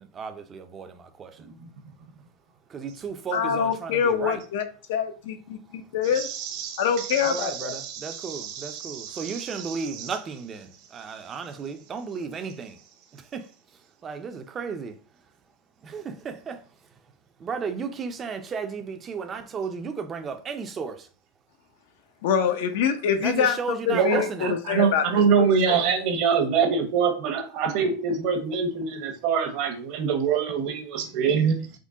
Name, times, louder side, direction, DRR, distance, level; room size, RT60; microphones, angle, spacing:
voice 1, 0.0-1.5 2.7-4.4 5.7-5.8 7.2-12.8 13.1-15.0 15.8-16.6 17.4-21.1 23.2-24.6, right 5 dB, 25° right, 0.4 m, -34 dB
voice 2, 3.3-4.6 4.9-6.3 6.8-7.8 22.2-23.6 23.9-25.0 25.4-25.8, left 7 dB, 70° left, 0.5 m, -25 dB
voice 3, 6.1-9.8 23.9-31.8, right 6 dB, 55° right, 0.8 m, -25 dB
3.7 x 2.1 x 3.6 m
supercardioid pair, 135°, 0 cm